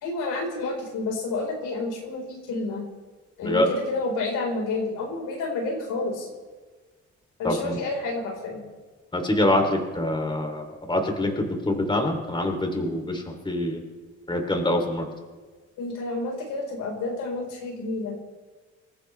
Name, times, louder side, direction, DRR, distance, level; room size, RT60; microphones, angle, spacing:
voice 1, 0.0-2.8 3.4-6.3 7.4-8.6 15.8-18.2, left 3 dB, 90° left, 0 dB, 4.7 m, -30 dB
voice 2, 7.4-7.8 9.1-13.8 14.3-15.1, left 1 dB, 15° left, 3 dB, 3.2 m, -25 dB
26.5 x 14.5 x 3.4 m, 1.4 s
cardioid pair, 90°, 30 cm